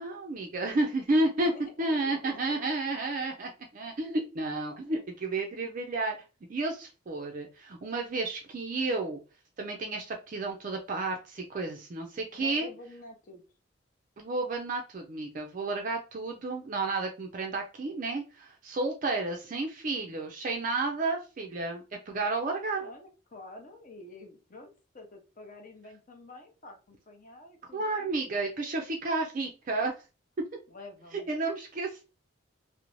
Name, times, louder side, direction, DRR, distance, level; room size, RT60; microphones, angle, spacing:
voice 1, 0.0-1.5 1.8-6.2 6.5-9.2 9.6-12.7 14.2-22.9 27.7-29.9 31.3-32.1, right 2 dB, 40° right, 3 dB, 0.4 m, -31 dB
voice 2, 1.4-2.6 5.5-5.7 6.7-6.8 12.4-13.4 22.5-24.7 24.9-28.2 30.7-31.3, left 2 dB, 40° left, 3 dB, 0.6 m, -48 dB
2.5 x 2.0 x 3.0 m, 0.32 s
head